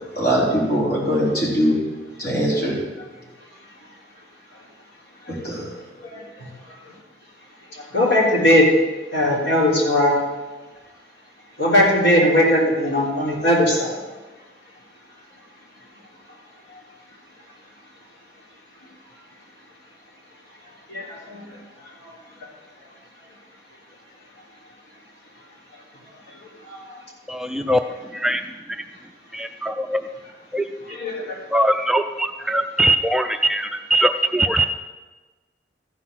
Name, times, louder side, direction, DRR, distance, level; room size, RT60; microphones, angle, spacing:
voice 1, 0.1-1.8 2.2-2.7 5.4-5.7 6.4-6.5, equal, 60° left, -5 dB, 3.9 m, -21 dB
voice 2, 7.7-8.7 9.1-10.2 11.6-14.0 20.9-21.5 22.0-22.1 26.7-27.0 30.9-31.4, left 1 dB, 80° left, -5 dB, 3.4 m, -19 dB
voice 3, 27.3-27.8 28.1-28.4 29.3-30.0 30.5-30.6 31.5-34.7, right 1 dB, 5° right, 6 dB, 0.3 m, -21 dB
14.0 x 5.8 x 6.2 m, 1.2 s
head